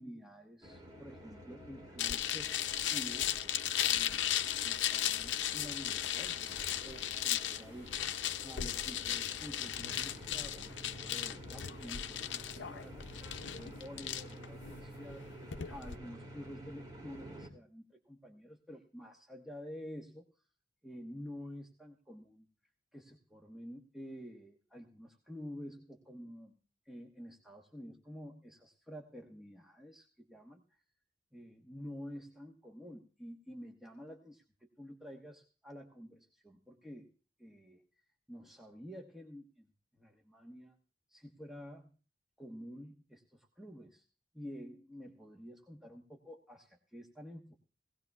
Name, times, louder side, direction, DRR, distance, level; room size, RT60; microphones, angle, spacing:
voice 1, 0.0-3.3 3.9-8.0 8.4-13.1 13.4-15.3 15.7-20.2 20.8-22.5 22.9-26.6 26.8-30.8 31.3-37.1 37.4-37.8 38.3-39.7 39.9-40.8 41.1-41.9 42.4-44.1 44.3-47.6, equal, ahead, 0 dB, 1.1 m, -49 dB
sound 1, 0.6-17.5, right 1 dB, 25° right, 2.6 m, -51 dB
sound 2, 2.0-16.0, left 11 dB, 80° left, 0.6 m, -36 dB
Indian Ocean - Waves, 5.2-10.6, equal, 60° right, 6.2 m, -61 dB
18.5 x 17.0 x 2.3 m, 0.36 s
head